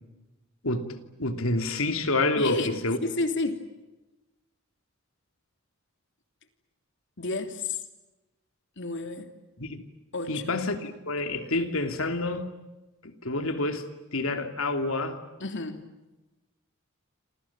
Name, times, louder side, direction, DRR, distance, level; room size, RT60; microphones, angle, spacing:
voice 1, 0.6-3.0 9.6-9.8 10.3-12.5 13.0-13.8 14.1-15.2, left 2 dB, 75° left, 7 dB, 3.0 m, -28 dB
voice 2, 2.4-3.6 7.2-7.8 8.8-9.3 10.1-10.6 15.4-15.8, left 3 dB, 60° left, 7 dB, 3.2 m, -31 dB
28.5 x 27.5 x 7.4 m, 1.1 s
head